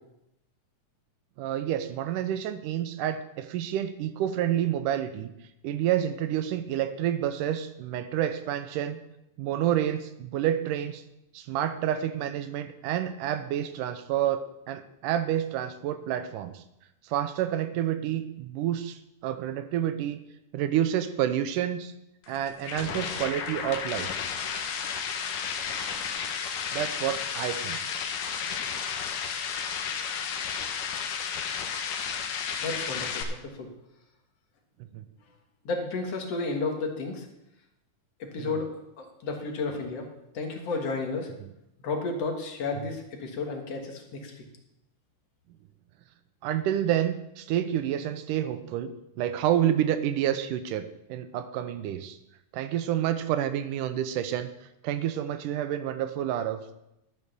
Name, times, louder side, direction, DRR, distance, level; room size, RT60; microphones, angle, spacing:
voice 1, 1.4-5.3 5.6-9.0 9.4-11.0 11.3-16.6 17.0-20.2 20.5-21.9 22.3-24.2 26.7-27.8 34.8-35.1 38.4-38.6 42.8-42.9 46.4-52.2 52.5-56.8, right 11 dB, 85° right, 11 dB, 2.3 m, -29 dB
sound 1, 22.2-33.2, left 7 dB, 80° left, 2.6 m, -32 dB
voice 2, 32.6-33.7 35.7-37.2 38.2-38.7 39.0-40.1 40.3-41.3 41.8-44.3, left 3 dB, 55° left, 2 dB, 2.5 m, -32 dB
12.5 x 6.5 x 6.8 m, 0.85 s
omnidirectional pair, 3.7 m